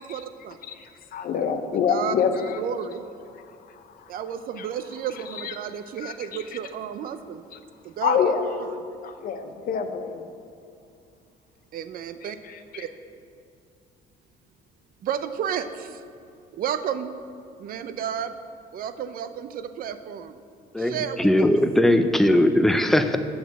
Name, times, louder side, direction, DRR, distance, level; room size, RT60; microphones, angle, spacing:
voice 1, 0.0-0.6 1.9-2.1 2.6-3.0 4.1-7.4 7.8-8.2 8.6-8.7 11.7-12.4 12.8-12.9 15.0-16.0 16.5-17.2 17.6-18.3 18.7-20.4 20.8-21.5, right 9 dB, 60° right, 11 dB, 0.5 m, -32 dB
voice 2, 0.6-3.0 3.3-5.6 6.0-6.6 7.5-7.6 8.0-8.5 9.0-10.3 12.2-12.9, left 6 dB, 60° left, 8 dB, 0.8 m, -28 dB
voice 3, 20.7-23.2, left 1 dB, ahead, 8 dB, 0.5 m, -19 dB
7.1 x 6.1 x 7.4 m, 2.4 s
cardioid pair, 110°, 17 cm